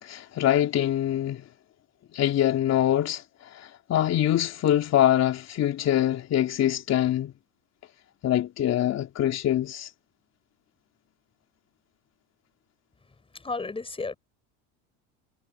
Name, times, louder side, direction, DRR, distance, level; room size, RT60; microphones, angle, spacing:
voice 1, 0.0-1.4 2.1-7.3 8.2-9.9, left 11 dB, 50° left, 3.6 m, -24 dB
voice 2, 13.3-14.2, left 3 dB, 15° left, 6.2 m, -33 dB
supercardioid pair, 100°, 34 cm